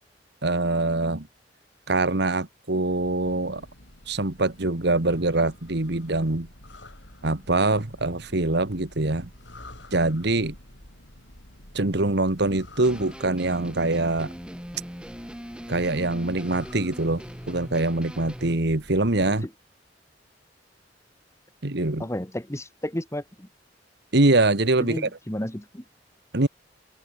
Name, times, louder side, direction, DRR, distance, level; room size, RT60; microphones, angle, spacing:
voice 1, 0.4-1.3 1.9-3.6 4.1-6.5 7.2-9.3 9.9-10.5 11.7-14.3 15.7-17.2 17.5-19.5 21.6-22.0 24.1-25.1 26.3-26.5, right 2 dB, 65° right, 1.7 m, -24 dB
sound 1, 2.8-19.5, left 1 dB, 75° left, 7.0 m, -49 dB
sound 2, 12.8-18.6, equal, 5° right, 5.1 m, -40 dB
voice 2, 22.0-23.5 24.8-25.8, left 1 dB, 15° left, 2.5 m, -32 dB
open air
head